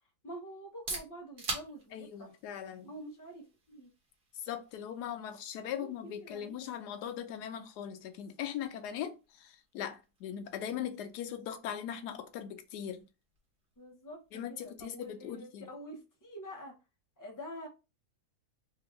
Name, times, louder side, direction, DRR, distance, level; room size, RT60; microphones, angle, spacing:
voice 1, 0.2-2.4 2.8-3.9 5.7-6.7 13.8-16.8 17.2-17.7, equal, 25° left, 0.4 m, -47 dB
sound 1, 0.6-16.2, right 2 dB, 40° right, 1.1 m, -49 dB
voice 2, 1.9-2.9 4.3-13.0 14.3-15.7, left 9 dB, 90° left, 1.2 m, -40 dB
3.5 x 2.4 x 3.0 m
omnidirectional pair, 1.7 m